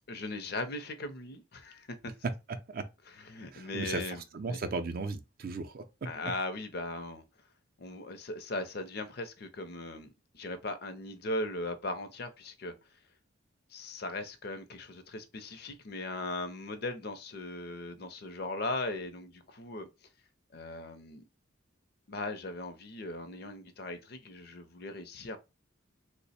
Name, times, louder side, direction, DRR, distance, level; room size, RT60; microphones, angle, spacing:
voice 1, 0.1-2.1 3.2-4.6 6.0-7.2 7.8-12.7 13.7-19.9 20.5-21.2 22.1-25.4, left 2 dB, 55° left, 0.5 m, -38 dB
voice 2, 2.2-2.9 3.5-5.8, right 3 dB, 50° right, 0.4 m, -36 dB
3.1 x 2.0 x 4.1 m
head